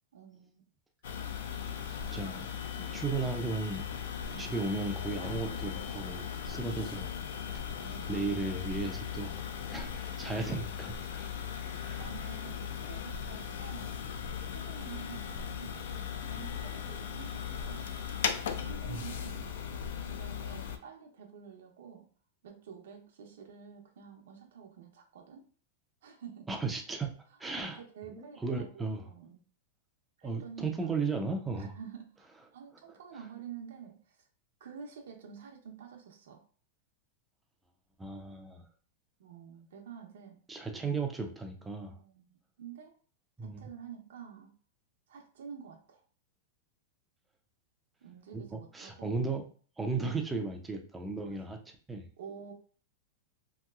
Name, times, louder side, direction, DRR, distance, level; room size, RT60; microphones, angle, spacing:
voice 1, 0.1-0.6 1.7-2.3 4.3-4.5 7.8-8.3 10.2-10.7 11.4-14.0 14.5-18.0 18.5-19.5 20.0-22.1 22.4-25.5 26.0-26.5 27.7-29.4 30.2-30.7 31.6-32.3 32.5-34.2 34.6-36.4 39.2-40.4 41.9-42.9 43.4-44.5 45.1-46.0 48.0-49.1 50.0-50.2 52.2-52.5, right 7 dB, 75° right, 2 dB, 0.6 m, -49 dB
sound 1, 1.0-20.8, left 8 dB, 65° left, 0.4 m, -38 dB
voice 2, 2.1-2.5 2.7-3.8 4.4-7.1 8.1-11.3 11.8-12.0 18.9-19.0 26.5-27.1 27.4-27.8 28.1-29.0 30.2-31.8 32.9-33.2 38.0-38.7 40.5-42.0 43.4-43.7 48.3-49.5 49.8-51.6 51.9-52.1, right 3 dB, 5° right, 3 dB, 0.4 m, -35 dB
3.0 x 2.9 x 2.3 m, 0.42 s
supercardioid pair, 175°, 0 cm